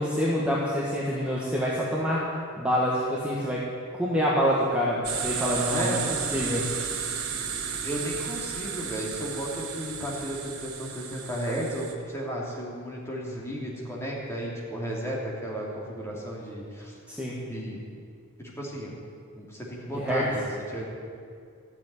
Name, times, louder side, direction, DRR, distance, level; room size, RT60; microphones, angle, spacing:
voice 1, 0.0-2.3 2.6-3.7 3.9-6.0 6.3-6.7 17.1-17.4 20.0-20.2, equal, 5° right, -6 dB, 1.5 m, -26 dB
sound 1, 5.0-11.9, right 7 dB, 85° right, 1.4 m, -33 dB
voice 2, 5.7-6.1 6.5-6.6 7.7-17.0 17.5-17.8 18.4-19.0 19.3-21.0, equal, 10° left, -4 dB, 2.8 m, -34 dB
14.0 x 7.3 x 9.7 m, 2.3 s
head